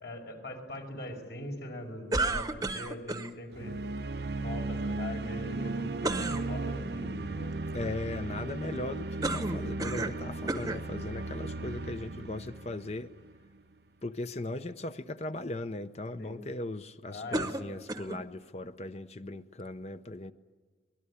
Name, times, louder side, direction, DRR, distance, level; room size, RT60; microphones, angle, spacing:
voice 1, 0.0-3.8 4.3-7.5 16.2-16.3 17.1-17.5, left 1 dB, 65° left, 3 dB, 5.1 m, -42 dB
sound 1, 2.1-3.3 6.0-6.4 9.2-10.2 10.5-10.8 11.6-11.7 17.3-18.2, right 2 dB, 20° right, 0.9 m, -32 dB
sound 2, 3.5-13.6, right 2 dB, 65° right, 0.7 m, -36 dB
voice 2, 7.7-13.1 14.0-20.3, left 2 dB, 35° left, 10 dB, 0.7 m, -38 dB
25.0 x 20.0 x 9.9 m, 1.4 s
head